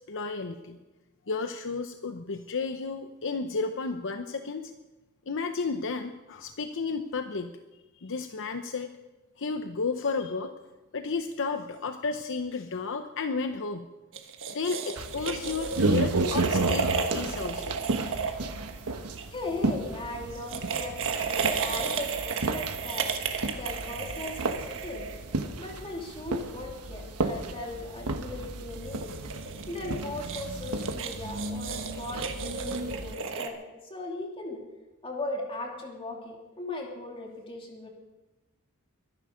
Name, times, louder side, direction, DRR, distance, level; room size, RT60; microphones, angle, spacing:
voice 1, 0.1-0.8 1.3-4.7 5.3-7.5 8.0-8.9 9.4-10.5 10.9-13.9 14.5-17.7, left 4 dB, 60° left, 7 dB, 0.8 m, -32 dB
sound 1, 14.1-19.3 20.3-25.5 28.7-33.5, right 5 dB, 60° right, 1.5 m, -33 dB
sound 2, 15.0-33.1, right 2 dB, 85° right, 1.2 m, -33 dB
voice 2, 19.3-25.1 25.6-29.2 29.7-33.6 33.8-34.6 35.0-37.9, left 2 dB, 25° left, 0 dB, 2.8 m, -38 dB
23.0 x 11.0 x 5.1 m, 1.1 s
head